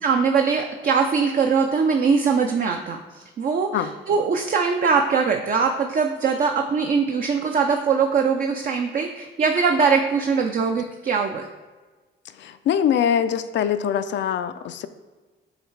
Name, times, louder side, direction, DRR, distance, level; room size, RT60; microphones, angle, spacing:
voice 1, 0.0-11.4, right 5 dB, 45° right, 4 dB, 0.5 m, -22 dB
voice 2, 12.4-14.9, left 8 dB, 65° left, 10 dB, 0.4 m, -23 dB
8.0 x 3.2 x 4.6 m, 1.3 s
cardioid pair, 90°, 20 cm